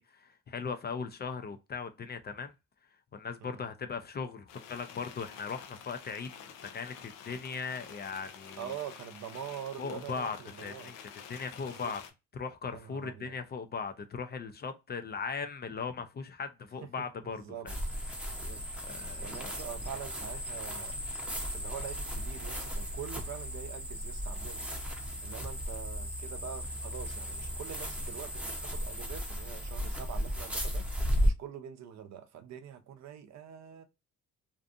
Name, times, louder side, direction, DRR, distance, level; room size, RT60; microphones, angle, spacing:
voice 1, 0.0-2.5 3.1-6.3 6.7-8.7 9.8-10.9 11.3-12.0 12.3-17.7 18.9-19.6, left 5 dB, 30° left, 0.4 m, -38 dB
sound 1, 4.5-12.1, left 8 dB, 90° left, 0.6 m, -49 dB
voice 2, 8.6-10.9 11.5-11.9 12.7-13.3 17.0-17.7 18.3-18.6 19.2-21.0 21.5-24.6 25.2-30.9 31.2-33.8, right 9 dB, 55° right, 0.6 m, -44 dB
sound 2, 17.7-31.3, equal, 5° right, 0.7 m, -35 dB
2.6 x 2.4 x 2.4 m
cardioid pair, 80°, 32 cm